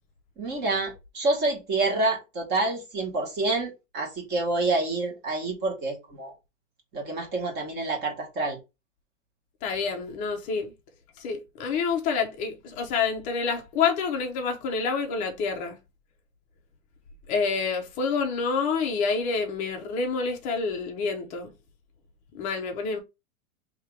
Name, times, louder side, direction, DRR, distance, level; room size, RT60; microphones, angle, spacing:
voice 1, 0.4-6.3 6.9-8.6, right 2 dB, 25° right, 1.4 m, -28 dB
voice 2, 9.6-10.7 11.2-15.8 17.3-21.5 22.3-23.0, left 5 dB, 20° left, 0.5 m, -28 dB
3.3 x 2.9 x 4.6 m
supercardioid pair, 160°, 40 cm